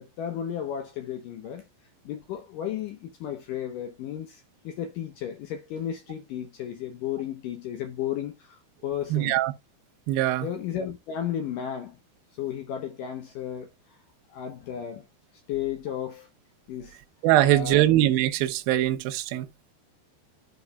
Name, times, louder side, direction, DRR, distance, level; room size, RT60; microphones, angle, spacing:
voice 1, 0.0-1.7 2.1-9.4 10.4-12.0 12.4-14.0 14.3-15.1 15.5-16.3 16.7-17.0 17.4-17.9, left 9 dB, 75° left, 2.0 m, -34 dB
voice 2, 9.1-9.5 10.1-10.5 17.2-19.5, right 14 dB, 75° right, 2.3 m, -22 dB
12.0 x 4.8 x 2.3 m
omnidirectional pair, 4.8 m